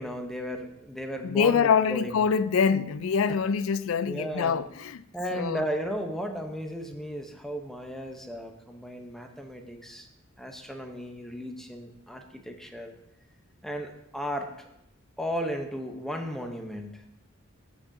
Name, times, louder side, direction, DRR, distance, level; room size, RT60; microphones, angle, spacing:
voice 1, 0.0-2.2 4.0-4.6 5.1-10.1 10.4-13.0 13.6-14.5 15.2-17.0, equal, ahead, 0.8 m, -35 dB
voice 2, 1.2-5.0 5.3-5.6, left 6 dB, 75° left, 0.4 m, -25 dB
14.5 x 6.1 x 2.7 m
head